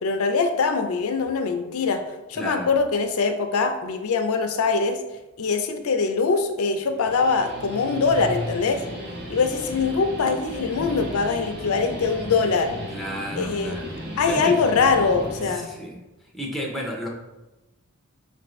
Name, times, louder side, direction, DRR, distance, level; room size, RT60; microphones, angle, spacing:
voice 1, 0.0-2.0 2.3-5.0 5.4-8.8 9.3-12.7 13.4-13.8 14.2-15.7, left 4 dB, 75° left, 7 dB, 0.4 m, -23 dB
voice 2, 2.3-2.7 12.9-14.0 14.3-14.6 15.4-16.1 16.3-17.1, equal, ahead, -1 dB, 0.5 m, -32 dB
Guitar, 6.9-15.6, equal, 50° right, 1.0 m, -35 dB
5.2 x 2.5 x 3.0 m, 1.0 s
head